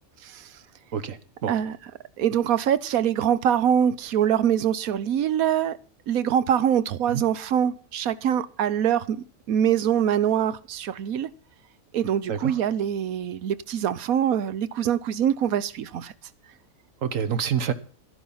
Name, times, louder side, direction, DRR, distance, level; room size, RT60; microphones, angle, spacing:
voice 1, 0.9-1.5 7.1-7.2 12.3-12.5 17.0-17.7, right 8 dB, 70° right, 1.5 m, -27 dB
voice 2, 2.2-5.8 6.1-11.3 11.9-16.1, right 9 dB, 90° right, 1.3 m, -24 dB
12.0 x 11.0 x 5.6 m
omnidirectional pair, 1.4 m